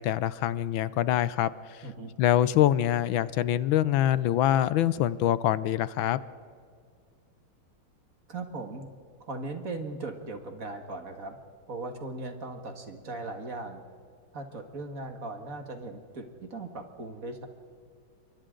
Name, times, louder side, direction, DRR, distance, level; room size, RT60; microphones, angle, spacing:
voice 1, 0.0-1.8 2.2-6.2, left 12 dB, 80° left, 16 dB, 1.4 m, -25 dB
voice 2, 8.3-8.9 9.2-11.4 11.7-13.8 14.3-17.5, right 2 dB, 45° right, 5 dB, 2.1 m, -38 dB
28.5 x 24.0 x 3.9 m, 2.2 s
omnidirectional pair, 2.2 m